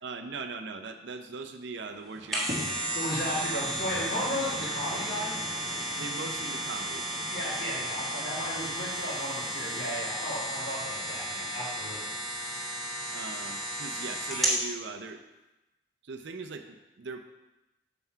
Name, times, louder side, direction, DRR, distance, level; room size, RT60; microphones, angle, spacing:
voice 1, 0.0-2.8 5.9-7.1 13.1-15.2 16.0-17.2, right 4 dB, 65° right, 7 dB, 0.6 m, -40 dB
sound 1, 2.0-14.6 15.1-15.2, right 1 dB, ahead, 1.8 m, -34 dB
sound 2, 2.5-13.0 13.6-13.7, equal, 25° right, 1.6 m, -44 dB
voice 2, 2.9-5.4 7.3-12.2 12.5-12.7, equal, 55° left, -7 dB, 2.0 m, -35 dB
6.9 x 5.7 x 4.5 m, 0.99 s
head